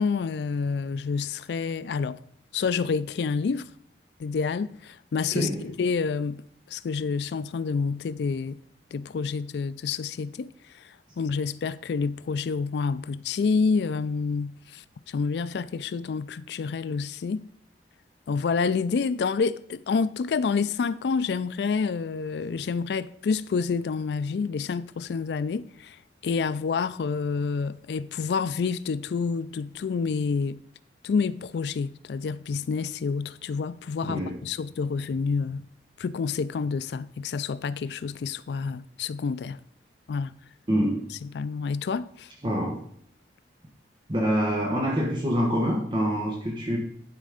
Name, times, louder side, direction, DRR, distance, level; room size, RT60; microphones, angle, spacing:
voice 1, 0.0-2.2 2.5-3.7 4.2-6.4 6.7-8.6 8.9-17.4 18.3-30.6 31.0-35.6 36.0-39.6 40.1-40.4 41.2-42.3, left 5 dB, 70° left, 0.4 m, -28 dB
voice 2, 34.0-34.4 40.7-41.0 42.4-42.8 44.1-46.8, equal, 25° right, 1.2 m, -26 dB
11.5 x 4.2 x 5.0 m
head